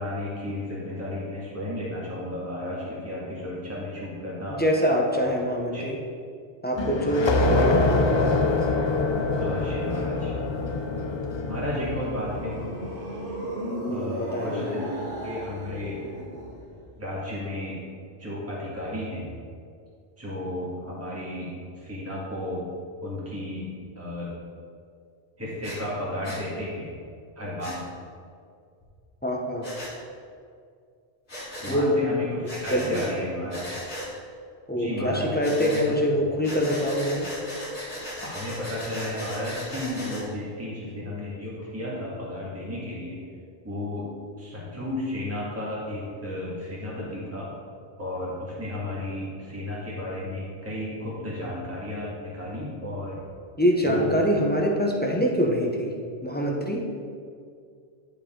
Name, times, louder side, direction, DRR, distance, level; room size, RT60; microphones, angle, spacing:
voice 1, 0.0-4.6 5.7-5.9 9.4-10.3 11.5-12.5 13.9-14.9 15.2-16.0 17.0-17.8 18.2-19.3 20.2-22.6 23.0-23.7 24.0-24.3 25.4-26.9 27.4-27.9 31.6-33.8 34.7-36.5 38.2-43.2 43.6-44.1 44.4-47.5 48.0-53.2 53.8-54.1, left 1 dB, 15° right, -7 dB, 1.8 m, -33 dB
voice 2, 4.5-6.0 6.6-8.3 13.9-14.6 29.2-29.7 31.7-32.0 32.7-33.0 34.7-37.3 53.6-55.9 56.2-56.8, equal, 10° left, -1 dB, 0.7 m, -25 dB
sound 1, 6.8-13.1, left 3 dB, 40° left, 0.4 m, -25 dB
sound 2, 11.6-16.9, equal, 85° right, 1.6 m, -35 dB
Breathing, 25.6-25.8 26.2-26.4 27.6-27.8 29.6-29.9 31.3-31.8 32.5-33.1 33.5-34.1 35.4-35.9 36.4-40.2, equal, 70° left, 2.1 m, -37 dB
11.0 x 4.9 x 3.7 m, 2.2 s
omnidirectional pair, 1.1 m